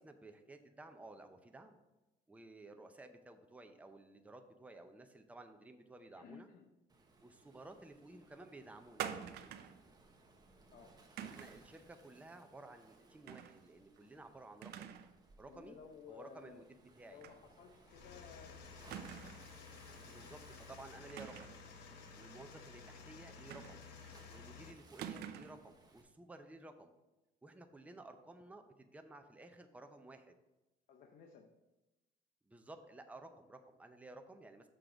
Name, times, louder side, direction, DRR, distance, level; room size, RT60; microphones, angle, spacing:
voice 1, 0.0-1.8 2.3-6.5 7.2-9.1 11.2-14.9 15.4-15.8 16.1-16.6 17.0-17.2 20.1-21.5 22.1-23.8 24.3-26.9 27.4-30.3 32.5-34.7, right 2 dB, 10° right, 6 dB, 0.6 m, -55 dB
voice 2, 6.1-6.7 10.7-11.0 15.5-16.7 17.1-19.5 30.9-31.5, left 6 dB, 55° left, 2 dB, 0.7 m, -57 dB
Waves surf, 6.9-26.0, right 3 dB, 25° right, 1.0 m, -64 dB
sound 1, 9.0-9.8 11.2-11.6 13.3-13.6 14.0-14.1 14.6-15.2 15.5-15.6 17.2-17.4 17.7-17.8 18.9-19.5 21.1-21.7 23.5-24.1 25.0-25.7, right 9 dB, 75° right, 0.5 m, -46 dB
sound 2, 17.9-24.7, left 5 dB, 85° left, 0.9 m, -54 dB
6.7 x 3.8 x 5.9 m, 1.0 s
cardioid pair, 110°, 17 cm